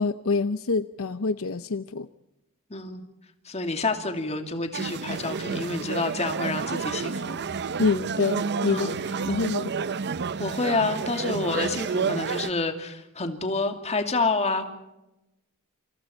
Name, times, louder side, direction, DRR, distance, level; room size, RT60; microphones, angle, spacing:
voice 1, 0.0-2.1 7.8-8.9 9.3-9.7, left 4 dB, 65° left, 12 dB, 0.7 m, -26 dB
voice 2, 2.7-3.0 3.4-7.4 8.7-9.0 10.4-14.7, left 3 dB, 30° left, 5 dB, 2.6 m, -28 dB
sound 1, 4.7-12.5, right 5 dB, 50° right, 0.7 m, -30 dB
27.5 x 26.0 x 4.4 m, 0.93 s
head